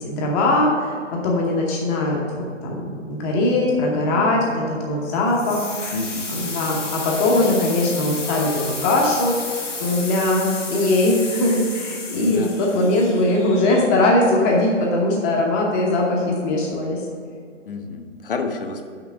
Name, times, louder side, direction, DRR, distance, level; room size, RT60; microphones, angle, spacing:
voice 1, 0.0-5.9 6.3-17.0, left 2 dB, 15° left, -1 dB, 0.9 m, -21 dB
sound 1, 5.3-14.2, left 3 dB, 70° left, 1.4 m, -32 dB
voice 2, 5.9-6.3 12.2-12.5 17.6-18.8, left 3 dB, 45° left, 5 dB, 0.9 m, -29 dB
5.9 x 5.6 x 6.6 m, 2.1 s
figure-of-eight pair, 135°, 37 cm